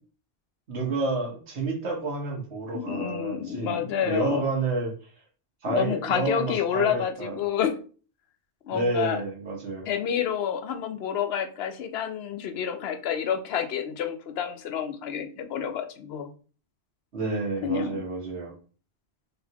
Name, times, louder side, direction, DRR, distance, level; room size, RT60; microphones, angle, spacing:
voice 1, 0.7-4.9 5.6-7.4 8.7-9.9 17.1-18.5, right 3 dB, 80° right, 0 dB, 1.6 m, -30 dB
voice 2, 2.7-4.4 5.7-7.8 8.6-9.2 9.9-16.3 17.6-18.0, left 8 dB, 70° left, 6 dB, 0.8 m, -29 dB
3.9 x 3.4 x 2.9 m, 0.39 s
omnidirectional pair, 1.1 m